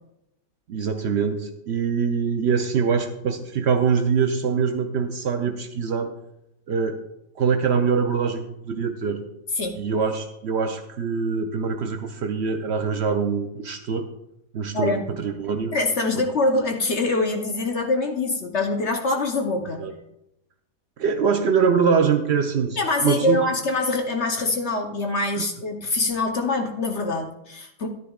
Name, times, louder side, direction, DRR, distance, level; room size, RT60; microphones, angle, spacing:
voice 1, 0.7-6.1 6.7-7.0 7.4-9.2 9.7-14.1 14.5-15.7 16.2-16.3 19.8-19.9 21.0-23.4 25.4-25.5, right 6 dB, 85° right, 5 dB, 0.5 m, -24 dB
voice 2, 14.7-15.1 15.7-19.8 22.8-27.9, left 2 dB, 50° left, 3 dB, 0.9 m, -24 dB
13.5 x 10.5 x 2.3 m, 0.84 s
omnidirectional pair, 1.8 m